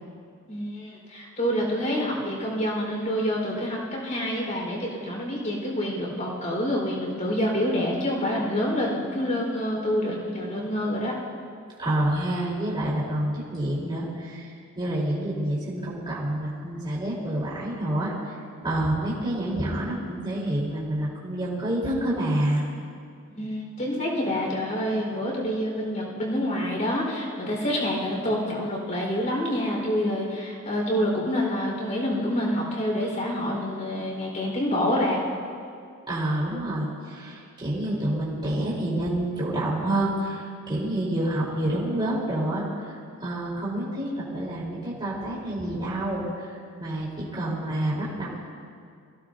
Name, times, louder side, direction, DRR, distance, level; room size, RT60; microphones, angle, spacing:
voice 1, 0.5-11.1 23.3-35.2, equal, 35° left, -2 dB, 4.2 m, -27 dB
voice 2, 11.8-14.5 14.7-18.1 18.6-22.6 36.1-42.6 43.2-46.5 46.8-48.3, right 1 dB, 20° right, -7 dB, 3.6 m, -28 dB
24.5 x 16.0 x 2.7 m, 2.3 s
head